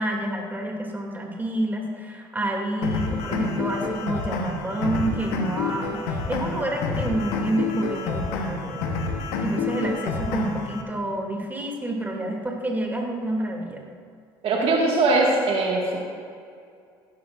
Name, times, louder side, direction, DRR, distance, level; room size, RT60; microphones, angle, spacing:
voice 1, 0.0-8.9 9.4-13.8, right 1 dB, 15° right, 0 dB, 2.8 m, -28 dB
sound 1, 2.8-10.8, left 4 dB, 75° left, 1.2 m, -28 dB
voice 2, 14.4-16.0, right 2 dB, 55° right, -2 dB, 2.0 m, -21 dB
16.5 x 11.0 x 2.6 m, 2.3 s
hypercardioid pair, 60°, 12 cm